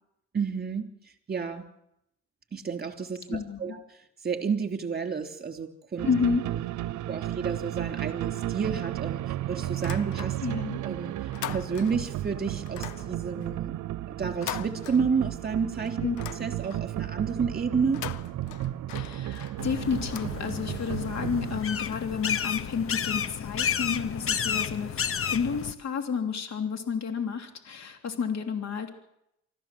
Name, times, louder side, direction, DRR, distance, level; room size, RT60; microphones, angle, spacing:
voice 1, 0.3-0.9 1.3-1.7 2.5-6.1 6.6-6.7 7.1-10.4 10.8-11.1 11.5-13.7 14.2-18.1, right 5 dB, 30° right, 6 dB, 3.1 m, -31 dB
voice 2, 3.3-3.8 6.0-6.4 10.4-10.8 16.0-16.2 18.9-28.9, left 6 dB, 60° left, 5 dB, 3.0 m, -31 dB
sound 1, 6.0-21.6, right 14 dB, 70° right, 0.7 m, -34 dB
sound 2, 9.7-10.7 11.0-12.2 12.7-15.5 15.8-17.0 17.8-20.9, left 12 dB, 80° left, 0.8 m, -42 dB
sound 3, 19.6-25.7, left 7 dB, 45° left, 1.1 m, -31 dB
25.0 x 14.5 x 7.5 m, 0.79 s
cardioid pair, 90°, 30 cm